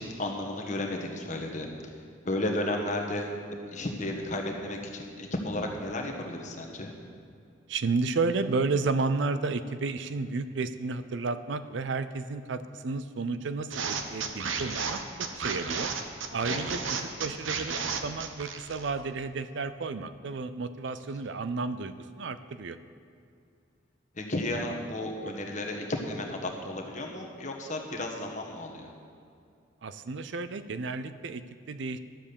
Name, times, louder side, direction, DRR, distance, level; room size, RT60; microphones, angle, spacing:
voice 1, 0.0-1.9 2.2-3.4 3.7-6.9 16.5-16.7 24.1-28.9, left 1 dB, 40° left, 2 dB, 1.3 m, -33 dB
voice 2, 7.7-15.9 16.3-17.7 18.0-22.8 29.8-31.4 31.7-32.0, right 4 dB, 65° right, 12 dB, 0.5 m, -32 dB
sound 1, 13.7-18.9, right 5 dB, 80° right, 0.9 m, -33 dB
12.0 x 7.4 x 6.9 m, 2.4 s
head